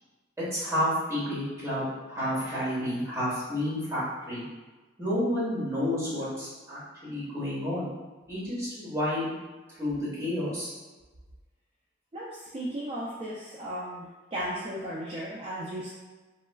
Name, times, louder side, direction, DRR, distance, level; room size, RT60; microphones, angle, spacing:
voice 1, 0.4-4.4 5.0-7.9 8.3-9.3 9.8-10.7, left 1 dB, 15° right, -11 dB, 1.1 m, -30 dB
voice 2, 12.1-15.9, equal, 30° right, -6 dB, 0.3 m, -35 dB
3.0 x 2.3 x 2.2 m, 1.3 s
head